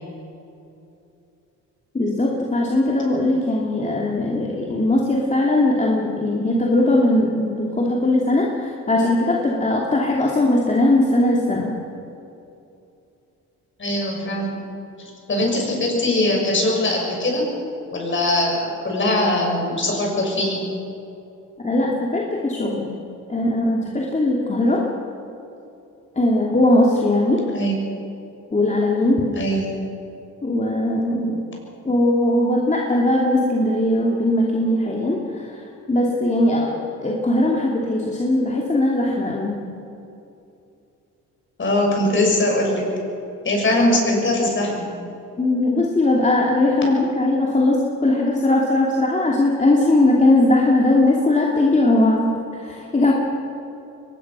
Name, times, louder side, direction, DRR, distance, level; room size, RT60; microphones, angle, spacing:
voice 1, 1.9-11.7 21.6-23.0 23.3-24.8 26.2-27.4 28.5-29.2 30.4-31.4 31.8-39.6 45.4-53.1, left 1 dB, 25° left, -2 dB, 2.7 m, -19 dB
voice 2, 13.8-14.6 15.0-17.5 17.9-20.6 27.5-27.8 29.4-29.7 41.6-42.9 43.4-45.0, left 1 dB, 40° left, 0 dB, 7.0 m, -21 dB
23.0 x 20.0 x 6.2 m, 2.7 s
cardioid pair, 90°, 30 cm